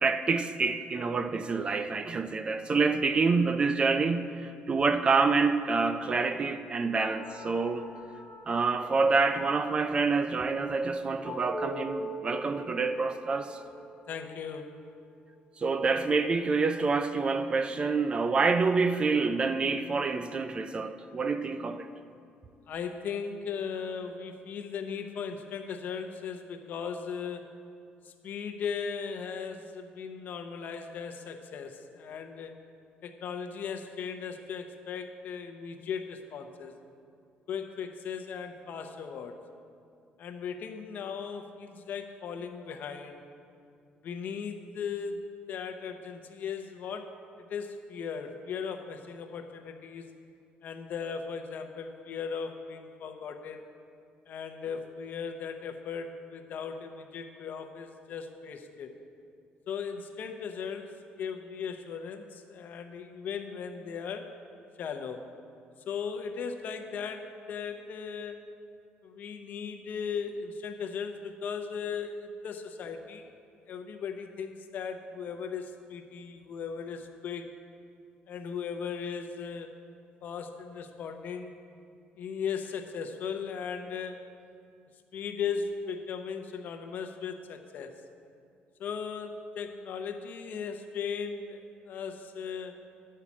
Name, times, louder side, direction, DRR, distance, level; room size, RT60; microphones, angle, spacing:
voice 1, 0.0-7.9 8.5-13.6 15.6-21.9, right 4 dB, 30° right, 0.4 m, -27 dB
sound 1, 7.0-15.8, left 1 dB, 30° left, 1.1 m, -44 dB
voice 2, 14.1-14.9 22.7-27.5 28.0-32.7 33.0-36.7 37.5-39.4 40.2-43.2 44.0-47.1 47.5-50.1 50.6-53.7 54.3-58.9 59.7-64.3 64.8-65.3 65.9-68.4 69.0-73.3 73.7-77.5 78.3-79.7 80.2-81.5 82.2-84.2 85.1-87.9 88.8-92.7, left 6 dB, 55° left, 0.8 m, -37 dB
9.5 x 5.6 x 7.3 m
cardioid pair, 135°, 4 cm